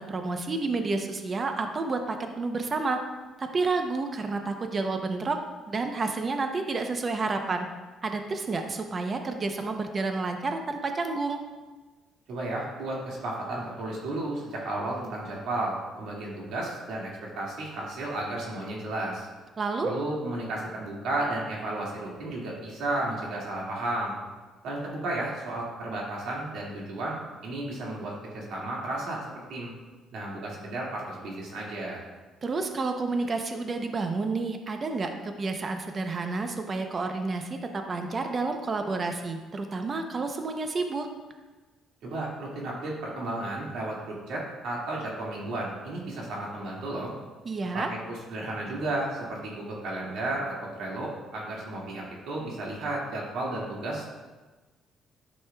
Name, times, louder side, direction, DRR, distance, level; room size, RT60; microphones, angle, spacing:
voice 1, 0.0-3.0 3.4-5.4 5.7-7.7 8.0-11.4 19.6-19.9 32.4-41.1 47.4-47.9, right 3 dB, 35° right, 5 dB, 0.6 m, -30 dB
voice 2, 12.3-17.1 17.4-19.3 19.8-24.2 24.6-27.2 27.4-29.2 29.5-29.7 30.1-32.0 42.0-47.1 47.7-54.1, right 2 dB, 75° right, -4 dB, 2.1 m, -33 dB
10.5 x 6.3 x 2.3 m, 1.3 s
cardioid pair, 115°, 0 cm